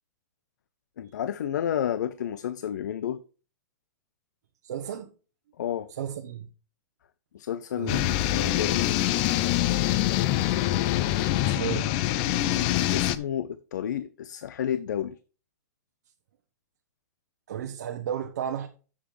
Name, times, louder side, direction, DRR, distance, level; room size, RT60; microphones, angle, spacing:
voice 1, 1.0-3.2 5.6-5.9 7.3-9.0 12.9-15.2, left 9 dB, 80° left, 0.5 m, -31 dB
voice 2, 4.6-5.1 5.9-6.5 7.8-8.2 11.4-11.9 17.5-18.7, right 9 dB, 65° right, 0.8 m, -33 dB
sound 1, 7.9-13.2, left 14 dB, 25° left, 0.4 m, -25 dB
10.0 x 7.4 x 3.1 m
supercardioid pair, 175°, 9 cm